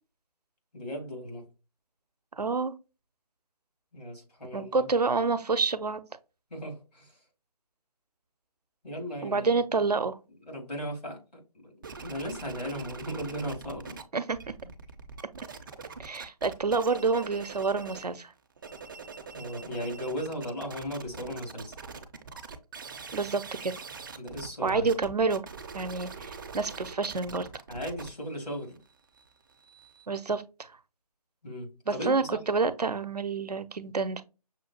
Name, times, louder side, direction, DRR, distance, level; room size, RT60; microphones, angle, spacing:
voice 1, 0.7-1.5 3.9-4.9 6.5-7.2 8.8-9.6 10.5-11.7 12.0-14.0 19.3-21.7 24.2-24.9 27.7-28.8 31.4-32.4, equal, 85° left, 2.5 m, -37 dB
voice 2, 2.4-2.7 4.5-6.0 9.2-10.2 14.1-14.4 16.0-18.3 23.1-23.7 24.6-25.4 25.7-27.5 30.1-30.7 31.9-34.2, right 4 dB, 80° right, 0.6 m, -28 dB
sound 1, 11.8-14.0 14.3-18.1 18.5-30.1, right 5 dB, 35° right, 0.4 m, -43 dB
6.2 x 2.3 x 2.8 m
figure-of-eight pair, 145°, 20 cm